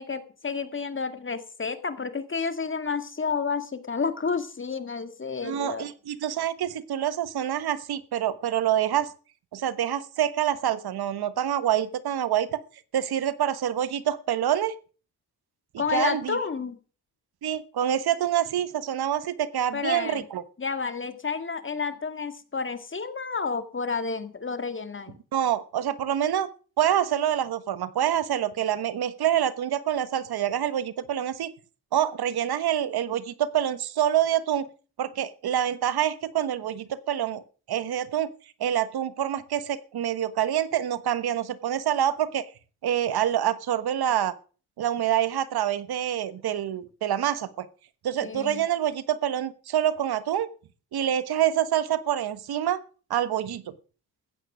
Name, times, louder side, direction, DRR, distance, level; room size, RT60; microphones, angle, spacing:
voice 1, 0.0-5.9 15.8-16.8 19.7-20.3 20.6-25.2 48.2-48.6, left 5 dB, 30° left, 10 dB, 1.9 m, -30 dB
voice 2, 5.4-9.1 9.5-12.6 12.9-14.7 15.9-16.4 17.4-20.4 25.3-26.5 26.8-31.5 31.9-34.7 35.0-37.4 37.7-38.3 38.6-42.5 42.8-44.3 44.8-47.7 48.0-50.5 50.9-52.8 53.1-53.7, right 10 dB, 70° right, 15 dB, 1.2 m, -26 dB
14.5 x 9.0 x 6.2 m, 0.38 s
cardioid pair, 80°, 40 cm